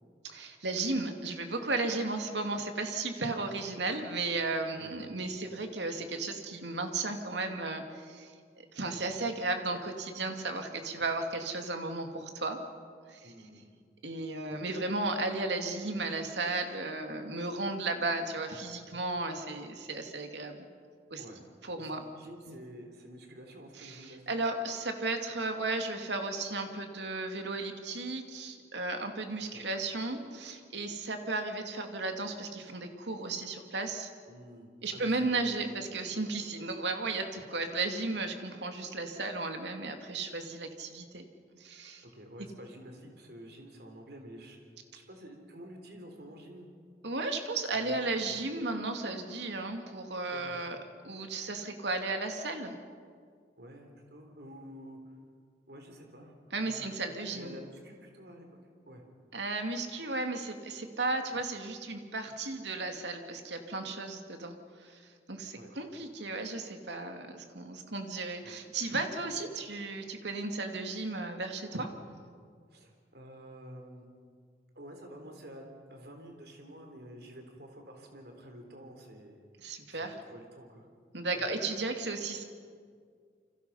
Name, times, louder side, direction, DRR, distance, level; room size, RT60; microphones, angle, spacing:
voice 1, 0.2-8.3 8.7-12.6 13.1-13.3 14.0-20.7 21.1-21.2 21.6-22.0 22.5-22.6 23.8-34.1 34.8-41.2 41.5-42.0 47.0-50.8 51.0-52.8 56.5-57.6 59.3-65.0 65.3-71.9 79.6-80.2 81.1-82.4, right 3 dB, 90° right, 5 dB, 2.5 m, -34 dB
voice 2, 13.2-13.6 14.5-14.6 21.2-21.4 21.8-24.2 29.5-29.6 34.3-35.5 42.0-44.7 44.9-46.7 47.8-48.4 50.3-50.6 53.6-55.0 55.7-56.9 57.3-58.6 58.9-59.0 65.5-65.7 68.4-68.6 72.7-74.1 74.8-79.4 79.9-80.9 81.3-81.5, equal, 65° right, 3 dB, 3.7 m, -49 dB
29.0 x 25.5 x 5.7 m, 2.1 s
head